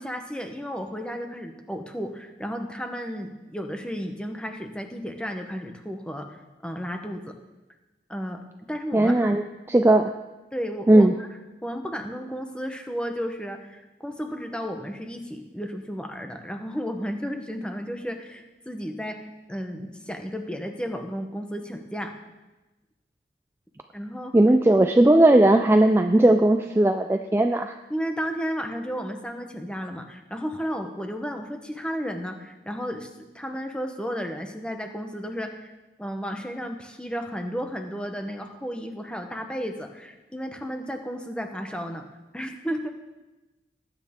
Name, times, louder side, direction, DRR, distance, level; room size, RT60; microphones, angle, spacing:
voice 1, 0.0-6.4 6.6-7.3 8.1-8.4 8.7-9.3 10.5-11.3 11.6-22.1 23.9-24.3 27.9-33.1 33.3-35.7 36.0-42.0 42.3-42.9, equal, 5° left, 4 dB, 0.9 m, -33 dB
voice 2, 8.9-9.4 9.7-10.1 10.9-11.1 24.3-27.7, right 1 dB, 15° right, 6 dB, 0.3 m, -17 dB
20.0 x 8.7 x 3.6 m, 1.1 s
head